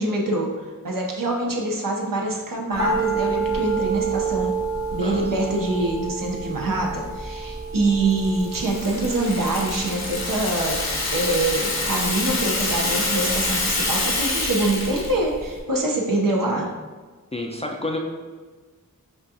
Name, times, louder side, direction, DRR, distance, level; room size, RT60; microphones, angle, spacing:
voice 1, 0.0-4.6 4.9-10.8 11.1-16.7, right 2 dB, 70° right, -1 dB, 0.8 m, -25 dB
sound 1, 2.8-15.1 15.3-15.4, right 4 dB, 40° right, 0.9 m, -30 dB
Rattle (instrument), 8.2-15.1, left 2 dB, 50° left, 0.8 m, -26 dB
voice 2, 17.3-18.0, left 2 dB, 20° left, 1 dB, 0.4 m, -29 dB
5.3 x 2.4 x 2.7 m, 1.4 s
wide cardioid pair, 45°, 35 cm